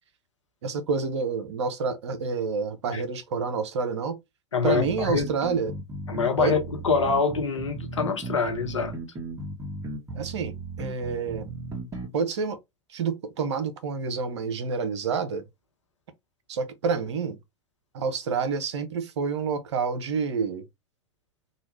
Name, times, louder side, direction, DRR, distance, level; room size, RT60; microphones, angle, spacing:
voice 1, 0.6-4.2 4.6-5.7 6.4-6.5 10.1-11.5 12.1-12.6 12.9-15.4 16.5-17.4 17.9-20.6, right 5 dB, 70° right, 0.7 m, -28 dB
voice 2, 4.5-5.3 6.1-8.9, left 5 dB, 80° left, 0.9 m, -25 dB
sound 1, 4.7-12.1, right 3 dB, 20° right, 1.4 m, -36 dB
3.0 x 2.3 x 3.1 m
figure-of-eight pair, 85°, 15 cm